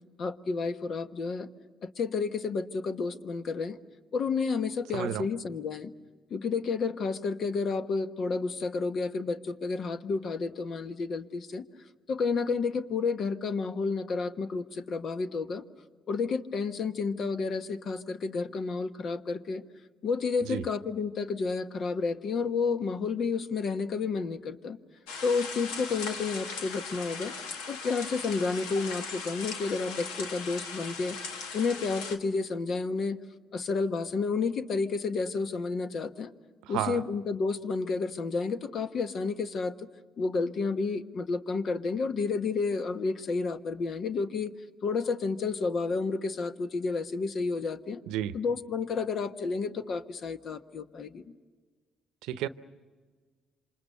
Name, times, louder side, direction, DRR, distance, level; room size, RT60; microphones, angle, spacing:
voice 1, 0.2-1.5 1.8-3.8 4.1-5.9 6.3-11.6 12.1-15.6 16.1-19.6 20.0-24.8 25.2-27.3 27.7-31.2 31.5-33.2 33.5-36.3 36.7-39.9 40.2-44.5 44.8-48.0 48.3-51.2, left 4 dB, 55° left, 10 dB, 1.3 m, -31 dB
voice 2, 4.9-5.3 20.4-20.6 36.6-37.0 48.1-48.4 52.2-52.5, right 12 dB, 75° right, 14 dB, 0.8 m, -32 dB
sound 1, 25.1-32.2, left 5 dB, 80° left, 1.8 m, -39 dB
27.5 x 26.0 x 6.7 m, 1.5 s
hypercardioid pair, 55°, 0 cm